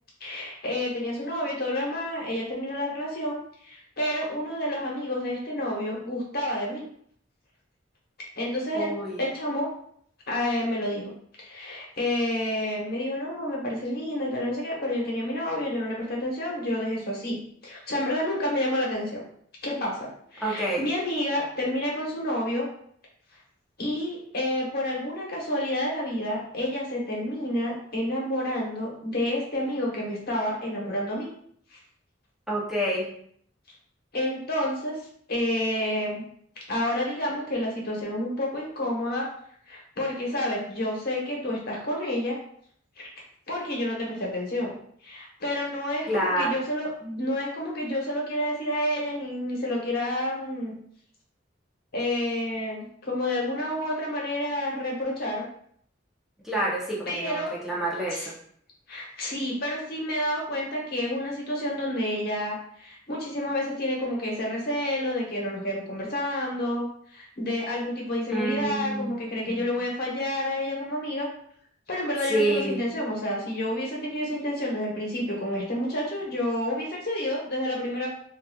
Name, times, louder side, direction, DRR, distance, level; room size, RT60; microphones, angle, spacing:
voice 1, 0.2-6.9 8.4-8.9 9.2-9.7 10.3-11.1 11.4-17.4 17.6-19.2 19.6-22.7 23.8-31.3 31.7-31.8 34.1-35.0 35.3-36.3 36.7-39.3 39.7-42.4 43.0-43.1 43.5-44.7 45.0-50.8 51.9-55.4 57.0-57.5 58.1-58.3 58.9-71.3 71.9-78.1, left 1 dB, 55° left, -3 dB, 1.0 m, -29 dB
voice 2, 8.7-9.2 20.4-20.8 32.5-33.1 46.1-46.5 56.4-58.3 68.3-69.2 69.5-69.7 72.3-72.8, right 1 dB, ahead, -6 dB, 0.6 m, -28 dB
3.8 x 2.6 x 2.3 m, 0.64 s
head